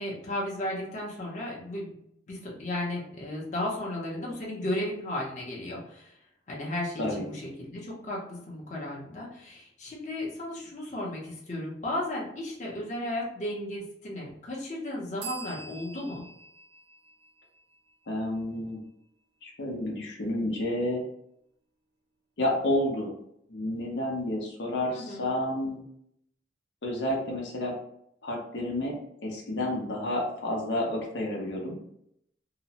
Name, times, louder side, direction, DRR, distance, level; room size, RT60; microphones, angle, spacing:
voice 1, 0.0-1.9 2.3-6.1 6.5-16.2 24.9-25.3, left 1 dB, 40° left, -3 dB, 0.7 m, -34 dB
sound 1, 15.2-18.8, right 4 dB, 85° right, 0.6 m, -46 dB
voice 2, 18.1-18.8 19.4-21.0 22.4-23.1 23.5-25.8 26.8-27.7 28.2-29.0 29.2-31.8, left 1 dB, 85° left, -1 dB, 0.7 m, -30 dB
2.8 x 2.0 x 2.8 m, 0.74 s
head